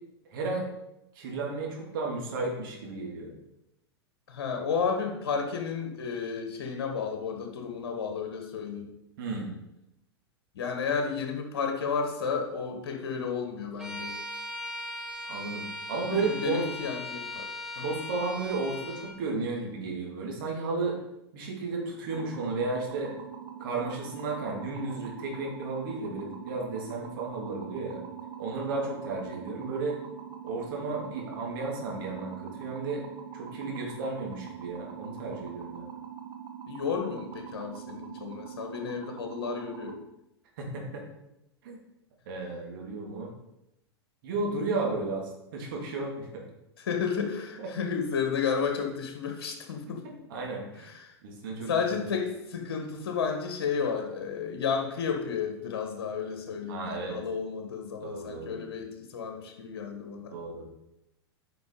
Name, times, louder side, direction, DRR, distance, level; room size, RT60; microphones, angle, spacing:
voice 1, 0.3-0.7 1.1-3.3 9.2-9.5 15.2-16.6 17.8-21.0 21.3-23.1 23.6-28.0 28.4-30.0 30.4-33.1 33.3-35.8 40.6-41.0 41.6-41.8 42.3-43.3 44.2-46.4 47.6-47.7 50.3-50.9 51.2-52.1 56.7-57.2 58.0-58.6 60.3-60.6, right 3 dB, 50° right, -1 dB, 2.5 m, -33 dB
voice 2, 4.3-8.9 10.5-14.2 16.1-17.5 17.8-18.0 36.7-40.0 46.8-50.0 50.8-51.2 51.7-60.4, left 6 dB, 60° left, 4 dB, 1.4 m, -32 dB
Bowed string instrument, 13.8-19.2, left 1 dB, 5° right, 1.7 m, -39 dB
sound 1, 22.1-39.9, right 8 dB, 30° right, 1.1 m, -43 dB
9.3 x 5.8 x 4.0 m, 0.87 s
figure-of-eight pair, 95°, 14 cm